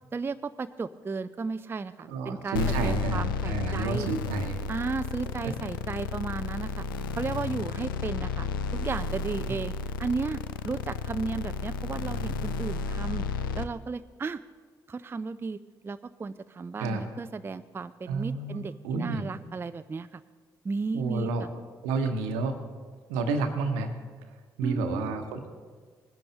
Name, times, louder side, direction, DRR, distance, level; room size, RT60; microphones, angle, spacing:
voice 1, 0.1-4.1 4.7-6.9 7.1-9.7 10.0-13.3 13.5-14.4 14.9-20.2 20.6-21.5 24.6-25.1, right 4 dB, 20° right, 13 dB, 0.4 m, -34 dB
voice 2, 2.1-4.6 5.4-5.5 9.5-9.6 16.8-17.0 18.1-19.2 20.9-21.4 21.8-22.5 23.1-23.9 24.6-25.5, right 3 dB, 75° right, 7 dB, 1.0 m, -30 dB
sound 1, 2.5-13.6, left 4 dB, 85° left, 0.4 m, -32 dB
20.0 x 10.5 x 2.8 m, 1.5 s
figure-of-eight pair, 40°, 11 cm